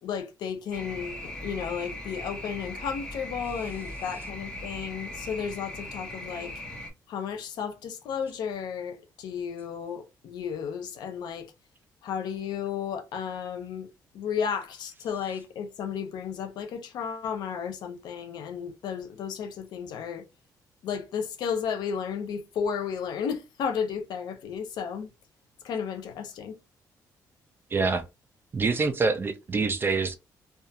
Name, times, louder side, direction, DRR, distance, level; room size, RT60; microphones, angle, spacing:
voice 1, 0.0-6.5 7.1-11.5 12.0-13.9 14.1-20.2 20.8-25.1 25.6-26.5, left 7 dB, 85° left, 0.6 m, -33 dB
sound 1, 0.7-6.9, left 1 dB, 10° left, 0.8 m, -39 dB
voice 2, 27.7-28.0 28.5-30.2, right 4 dB, 30° right, 0.4 m, -25 dB
2.4 x 2.4 x 2.8 m
cardioid pair, 120°, 7 cm